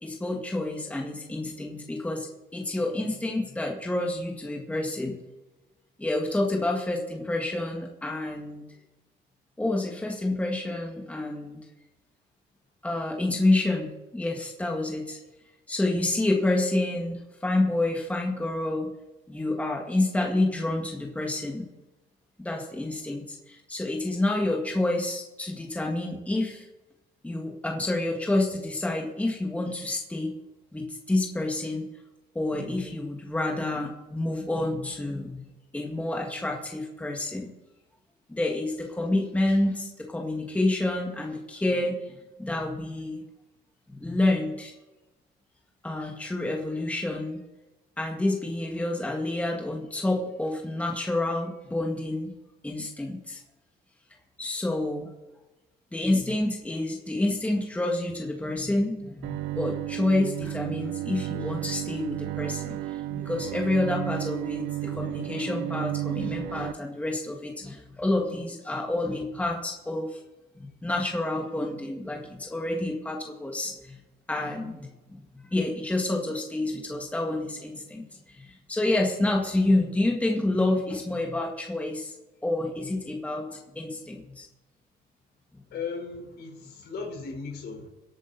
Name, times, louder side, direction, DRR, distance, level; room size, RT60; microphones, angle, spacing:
voice 1, 0.0-5.2 6.0-8.6 9.6-11.7 12.8-15.2 15.7-18.9 19.3-21.7 22.4-26.7 27.2-30.3 30.7-31.9 32.4-35.4 35.7-37.5 38.3-43.2 43.9-44.7 45.8-47.4 48.0-52.3 52.6-53.4 54.4-55.1 55.9-70.2 70.6-73.9 74.3-74.9 75.5-82.1 82.4-84.5, left 2 dB, 5° left, 0 dB, 1.9 m, -28 dB
Bowed string instrument, 59.2-66.7, right 16 dB, 80° right, 0.5 m, -33 dB
voice 2, 85.7-87.9, left 5 dB, 60° left, 3 dB, 4.4 m, -36 dB
23.5 x 8.7 x 4.2 m, 1.0 s
cardioid pair, 130°, 19 cm